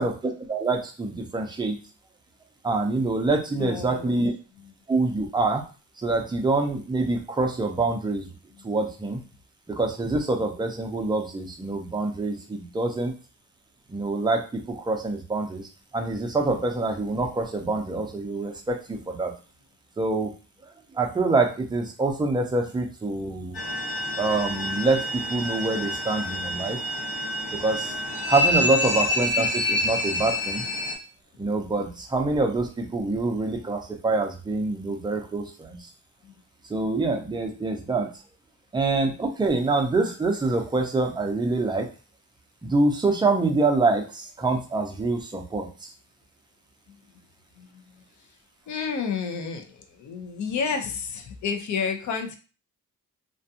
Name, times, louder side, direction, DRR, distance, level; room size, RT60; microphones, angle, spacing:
voice 1, 0.0-1.8 2.6-4.3 4.9-5.6 6.0-8.3 8.6-9.2 9.7-13.1 13.9-19.3 20.0-20.3 20.9-23.6 24.2-26.8 27.5-28.0 28.3-30.6 31.4-35.9 36.6-38.2 38.7-41.9 42.6-45.9, right 3 dB, 15° right, 2 dB, 0.4 m, -26 dB
voice 2, 3.6-4.3 23.2-23.3 36.2-36.3 47.6-48.0 48.7-52.4, left 5 dB, 60° left, 5 dB, 0.5 m, -31 dB
sound 1, 23.5-30.9, left 1 dB, 75° left, 1.3 m, -27 dB
2.5 x 2.2 x 2.6 m, 0.35 s
wide cardioid pair, 140°, 33 cm